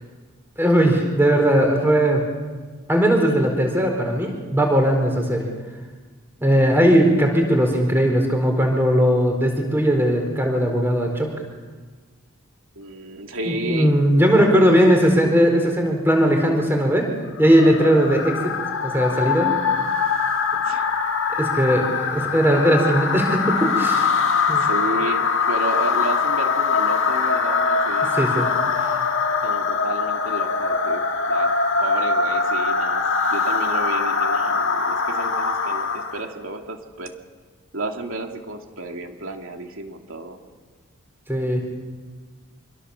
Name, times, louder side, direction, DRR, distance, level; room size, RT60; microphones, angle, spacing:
voice 1, 0.6-2.3 2.9-5.4 6.4-11.3 13.5-17.1 17.4-18.5 18.8-19.5 21.4-24.1 24.5-24.7 28.1-28.5 28.8-28.9 41.3-41.6, equal, 10° right, 2 dB, 4.3 m, -18 dB
voice 2, 12.8-14.0 20.6-20.9 24.6-28.2 29.4-31.0 31.3-31.5 31.8-33.0 33.3-37.1 37.7-40.4, right 2 dB, 70° right, 3 dB, 2.8 m, -32 dB
sound 1, 17.4-36.3, left 5 dB, 60° left, 1.8 m, -22 dB
26.0 x 23.0 x 7.3 m, 1.4 s
head